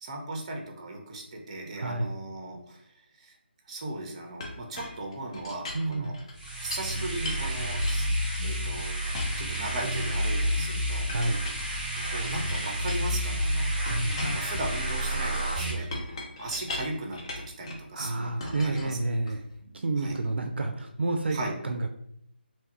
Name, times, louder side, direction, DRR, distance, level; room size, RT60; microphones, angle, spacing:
voice 1, 0.0-3.4 3.7-6.2 6.6-8.1 8.4-8.9 9.4-11.1 12.0-13.7 14.2-15.9 16.4-19.0 20.0-20.2 21.3-21.5, right 2 dB, 35° right, 2 dB, 0.6 m, -37 dB
voice 2, 1.8-2.1 5.7-6.1 11.1-11.5 13.9-14.2 17.9-21.4 21.6-21.9, right 2 dB, 75° right, 5 dB, 0.4 m, -30 dB
Chink clink, 4.4-6.9 7.2-8.7 9.1-10.4 11.1-13.4 13.9-17.9 18.4-19.5, left 2 dB, 30° left, 0.5 m, -39 dB
sound 1, 6.3-15.7, equal, 10° right, 0.9 m, -30 dB
2.9 x 2.2 x 2.9 m, 0.74 s
figure-of-eight pair, 155°, 6 cm